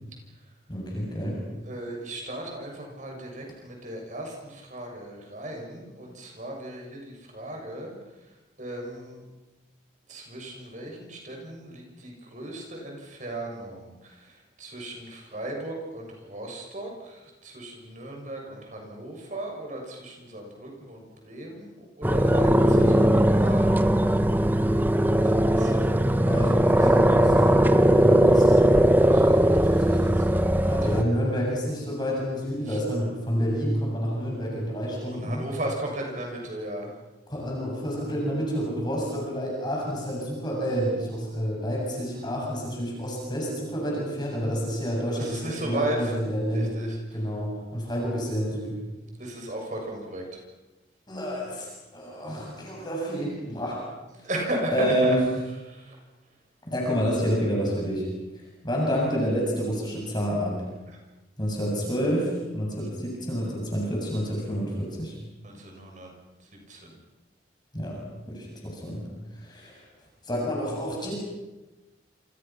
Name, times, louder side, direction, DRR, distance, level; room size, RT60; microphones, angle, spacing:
voice 1, 0.7-1.4 26.2-27.6 27.9-28.7 29.2-30.2 30.6-35.4 37.3-46.8 47.1-48.9 51.1-53.8 54.7-55.2 56.6-58.1 58.6-60.6 61.4-65.1 67.7-68.0 68.3-69.8 70.2-71.1, equal, 25° left, -2 dB, 7.6 m, -29 dB
voice 2, 1.6-7.9 8.6-9.2 10.1-23.7 25.3-26.9 29.1-30.7 32.7-32.8 35.1-36.9 45.1-46.1 46.5-47.0 49.2-50.4 54.2-55.2 55.7-56.0 65.4-66.1 66.7-66.9, right 1 dB, 45° right, 1 dB, 7.1 m, -36 dB
sound 1, 22.0-31.0, right 1 dB, 10° right, 1.1 m, -19 dB
28.5 x 28.5 x 6.0 m, 1.1 s
head